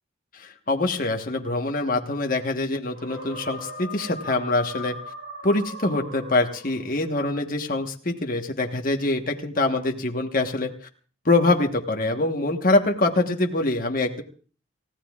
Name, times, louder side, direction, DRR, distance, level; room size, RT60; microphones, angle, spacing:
voice 1, 0.3-4.9 5.4-10.7 11.2-14.2, left 2 dB, 40° left, 3 dB, 1.3 m, -24 dB
sound 1, 2.9-7.0, left 1 dB, 75° right, 7.8 m, -38 dB
29.0 x 15.0 x 2.4 m, 0.40 s
head